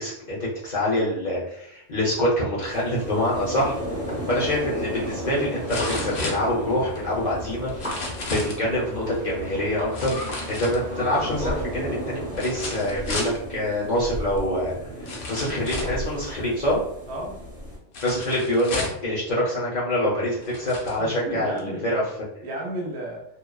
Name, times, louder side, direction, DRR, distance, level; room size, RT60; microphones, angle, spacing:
voice 1, 0.0-3.7 4.3-7.7 8.3-10.2 10.6-14.7 15.0-16.8 18.0-22.0, left 1 dB, 45° left, -6 dB, 0.6 m, -25 dB
sound 1, 2.6-17.8, equal, 30° right, 0.9 m, -35 dB
sound 2, 3.0-11.6, equal, 10° right, 0.7 m, -37 dB
sound 3, 4.3-4.4 5.7-7.0 7.7-8.6 9.9-11.1 12.3-13.4 14.4-14.5 15.1-16.0 17.9-19.1 19.9-20.0 20.4-21.0 21.6-21.7, left 2 dB, 90° left, 1.0 m, -33 dB
voice 2, 17.1-17.4 21.0-21.8 22.4-23.2, right 1 dB, 65° right, -1 dB, 0.9 m, -33 dB
2.7 x 2.1 x 2.2 m, 0.74 s
omnidirectional pair, 1.2 m